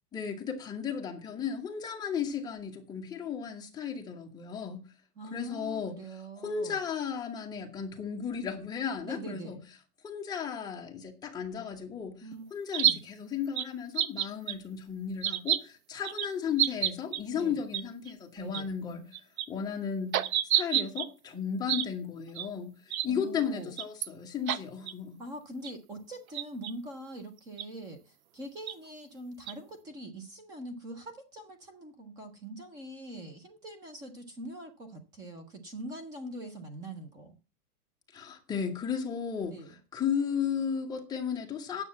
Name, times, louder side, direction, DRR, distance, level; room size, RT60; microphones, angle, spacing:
voice 1, 0.1-4.9 5.3-6.0 6.4-9.6 10.0-12.2 12.5-19.1 19.5-20.2 20.5-25.2 38.1-41.8, left 7 dB, 10° left, 1.0 m, -34 dB
voice 2, 5.2-6.8 9.0-9.6 12.2-12.5 12.8-13.0 17.3-17.6 18.4-18.7 23.1-23.7 25.2-37.4 39.5-39.8, right 1 dB, 10° right, 0.5 m, -43 dB
sound 1, 12.7-12.9 13.6-13.7 13.9-14.5 15.2-15.6 16.0-16.3 16.6-17.2 17.7-17.8 18.1-18.2 18.5-18.6 19.1-19.4 20.1-21.1 21.7-21.8 22.3-22.5 22.9-23.1 23.8-24.1 24.5-24.6 24.9-25.0 25.6-25.7 26.3-26.7 27.6-27.7 28.7-28.8 29.5-29.6, right 11 dB, 60° right, 0.8 m, -28 dB
9.4 x 6.9 x 7.2 m
supercardioid pair, 165°, 46 cm